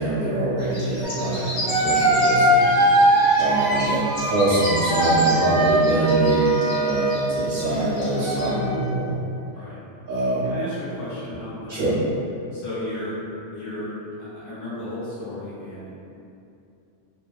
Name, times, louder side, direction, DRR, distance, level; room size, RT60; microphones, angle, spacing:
voice 1, 0.0-2.7 3.4-9.2 10.1-10.5 11.7-12.0, right 1 dB, 50° right, -11 dB, 1.2 m, -24 dB
sound 1, 0.6-8.5, equal, 90° left, 1.2 m, -34 dB
sound 2, 1.0-1.1 1.7-7.3 8.0-8.9, right 1 dB, 25° right, 0.6 m, -21 dB
voice 2, 1.2-1.5 3.3-3.7 9.5-9.8 10.4-11.8 12.5-13.2 13.5-13.9 14.2-15.9, left 1 dB, 70° left, -11 dB, 1.3 m, -34 dB
3.2 x 2.1 x 2.3 m, 2.6 s
omnidirectional pair, 1.3 m